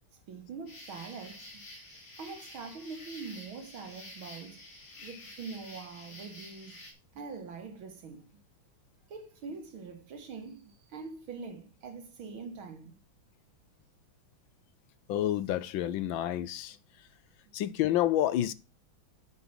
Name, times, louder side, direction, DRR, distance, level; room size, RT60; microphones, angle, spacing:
voice 1, 0.3-1.6 2.2-4.6 5.0-6.8 7.1-8.3 9.1-13.0, right 5 dB, 85° right, 2.5 m, -43 dB
sound 1, 0.7-6.9, left 1 dB, 60° left, 3.5 m, -49 dB
voice 2, 15.1-16.8 17.5-18.5, left 12 dB, 80° left, 1.4 m, -29 dB
8.3 x 5.5 x 5.9 m
omnidirectional pair, 2.2 m